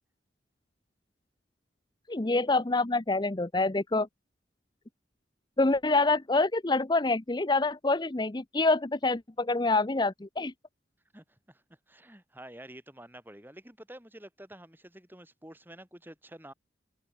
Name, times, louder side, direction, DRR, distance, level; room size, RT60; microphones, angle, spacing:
voice 1, 2.1-4.1 5.6-10.5, left 3 dB, 25° left, 0.7 m, -26 dB
voice 2, 11.1-16.5, right 1 dB, 10° right, 7.4 m, -49 dB
head